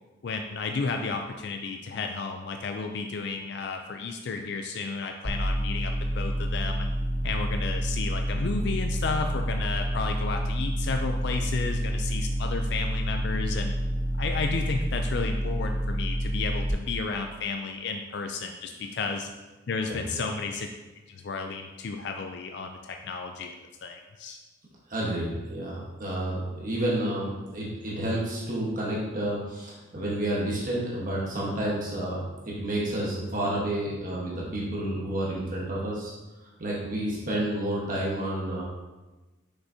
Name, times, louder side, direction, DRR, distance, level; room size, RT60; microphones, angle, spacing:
voice 1, 0.2-6.9 7.2-13.7 14.2-19.3 19.7-20.7 21.1-23.5 23.8-24.4, left 4 dB, 60° left, 4 dB, 0.4 m, -32 dB
sound 1, 5.2-16.7, equal, 5° right, 0.9 m, -28 dB
voice 2, 24.9-36.1 36.6-38.6, right 1 dB, 45° right, -5 dB, 1.3 m, -30 dB
6.2 x 6.0 x 2.8 m, 1.1 s
head